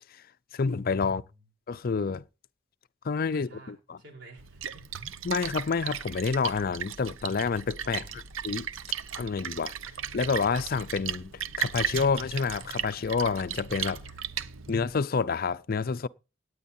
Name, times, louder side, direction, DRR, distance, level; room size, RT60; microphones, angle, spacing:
voice 1, 0.5-1.2 1.7-2.2 3.0-4.0 5.2-8.0 8.4-8.7 9.2-9.7 10.1-11.3 11.6-14.0 14.7-16.1, left 5 dB, 50° left, 0.5 m, -28 dB
voice 2, 1.0-1.5 3.3-3.7 4.0-5.1 7.8-8.5, right 2 dB, 60° right, 4.3 m, -52 dB
Splash splatter, 4.4-15.0, right 8 dB, 90° right, 0.7 m, -36 dB
18.0 x 9.4 x 2.7 m
head